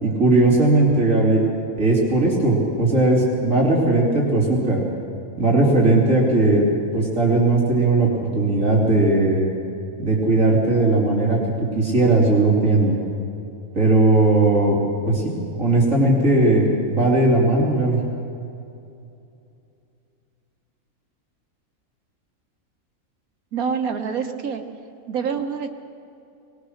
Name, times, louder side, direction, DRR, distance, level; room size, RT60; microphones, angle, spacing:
voice 1, 0.0-1.4 1.8-4.8 5.4-6.6 6.9-9.5 10.0-11.4 11.7-13.0 13.7-14.8 15.1-15.3 15.6-18.0, right 2 dB, 65° right, -4 dB, 3.4 m, -18 dB
voice 2, 23.5-24.6 25.1-25.7, right 6 dB, 85° right, 6 dB, 1.6 m, -26 dB
21.0 x 20.0 x 6.5 m, 2.6 s
omnidirectional pair, 1.5 m